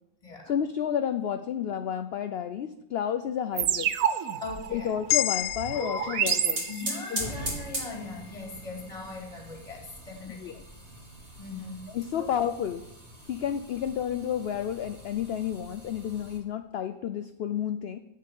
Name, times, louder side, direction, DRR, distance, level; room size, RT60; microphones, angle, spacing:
voice 1, 0.5-3.9 4.7-6.6 7.1-7.3 10.4-10.6 11.9-12.8 13.3-18.0, left 9 dB, 65° left, 9 dB, 0.6 m, -31 dB
sound 1, 3.6-7.2, right 9 dB, 70° right, 1.0 m, -30 dB
voice 2, 4.4-4.9 5.7-6.3 6.7-10.5 11.4-11.9 12.2-12.3, left 2 dB, 20° left, 0 dB, 2.4 m, -39 dB
sound 2, 5.1-9.4, left 13 dB, 85° left, 1.1 m, -33 dB
sound 3, 5.8-16.4, right 1 dB, 45° right, 2.8 m, -40 dB
7.6 x 7.2 x 8.3 m, 0.88 s
omnidirectional pair, 1.6 m